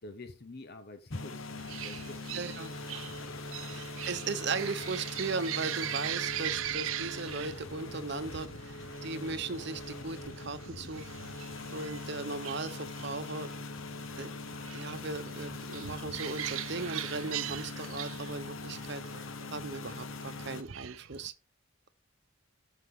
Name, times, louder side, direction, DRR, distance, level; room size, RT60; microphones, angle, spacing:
voice 1, 0.0-2.4, left 2 dB, 50° left, 0.9 m, -46 dB
sound 1, 1.1-20.6, left 3 dB, 70° left, 1.1 m, -42 dB
sound 2, 1.6-21.3, right 12 dB, 75° right, 0.5 m, -41 dB
voice 2, 2.3-2.7 3.7-11.1 11.7-13.5 14.2-14.3 14.7-19.0 19.5-21.3, right 3 dB, 55° right, 0.9 m, -37 dB
13.5 x 5.7 x 3.7 m
head